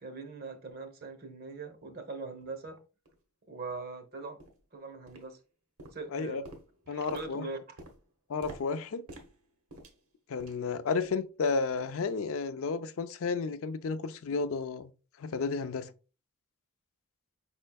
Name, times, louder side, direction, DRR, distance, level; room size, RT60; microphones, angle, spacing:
voice 1, 0.0-2.8 3.5-4.4 4.7-5.4 5.9-6.4 6.9-7.8, right 3 dB, 45° right, 0.8 m, -41 dB
sound 1, 2.4-2.5 3.1-3.2 3.7-3.9 4.4-4.7 5.1-5.5 5.8-10.7 11.0-11.3 11.7-11.9 12.4-12.5, right 1 dB, 75° right, 1.1 m, -51 dB
voice 2, 6.1-6.4 6.9-7.5 8.3-9.0 10.3-14.9 15.2-15.9, left 4 dB, 65° left, 0.4 m, -32 dB
5.3 x 4.3 x 2.3 m
head